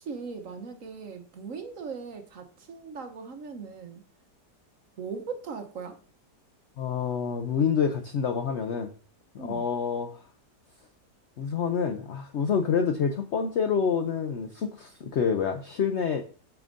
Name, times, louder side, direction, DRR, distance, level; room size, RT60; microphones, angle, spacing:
voice 1, 0.0-4.0 5.0-6.0 9.4-9.7, right 5 dB, 60° right, 6 dB, 1.1 m, -39 dB
voice 2, 6.8-8.9 9.3-10.2 11.4-16.2, left 6 dB, 70° left, 6 dB, 0.6 m, -27 dB
8.6 x 5.9 x 2.5 m, 0.40 s
omnidirectional pair, 1.8 m